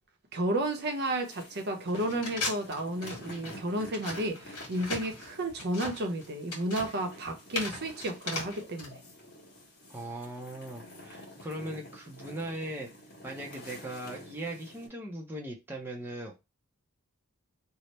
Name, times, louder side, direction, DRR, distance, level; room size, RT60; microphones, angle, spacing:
voice 1, 0.3-9.0, right 1 dB, 50° right, 0.7 m, -32 dB
sound 1, 0.6-14.9, equal, 50° left, 1.5 m, -50 dB
sound 2, 1.9-8.9, left 2 dB, 75° left, 1.5 m, -38 dB
voice 2, 9.9-12.9 13.2-16.3, right 1 dB, 10° right, 0.5 m, -39 dB
3.2 x 2.0 x 4.0 m
head